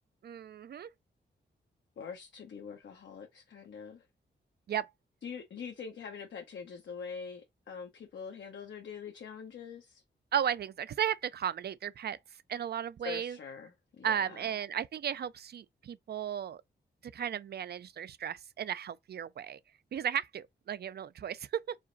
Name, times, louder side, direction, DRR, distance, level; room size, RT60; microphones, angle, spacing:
voice 1, 0.2-0.9 4.7-4.9 10.3-12.2 12.5-13.4 14.0-16.6 17.1-19.6 19.9-21.8, right 9 dB, 60° right, 0.4 m, -35 dB
voice 2, 2.0-4.0 5.2-10.0 13.0-14.5, left 6 dB, 80° left, 0.9 m, -44 dB
4.9 x 2.0 x 3.9 m
wide cardioid pair, 120°, 19 cm